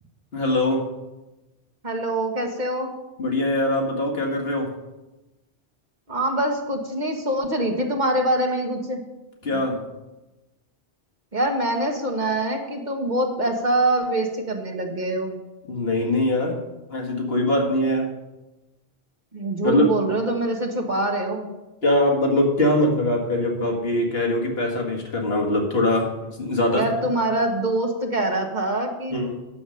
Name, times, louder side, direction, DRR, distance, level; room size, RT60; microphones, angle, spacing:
voice 1, 0.3-0.8 3.2-4.7 9.4-9.8 15.7-16.6 16.9-18.1 19.6-19.9 21.8-26.1 26.4-26.8 29.1-29.4, left 1 dB, 65° left, 0 dB, 2.0 m, -22 dB
voice 2, 1.8-2.9 6.1-9.0 11.3-15.3 19.3-21.5 26.8-29.1, right 1 dB, 45° right, 2 dB, 1.4 m, -24 dB
9.9 x 7.1 x 6.4 m, 1.1 s
omnidirectional pair, 1.1 m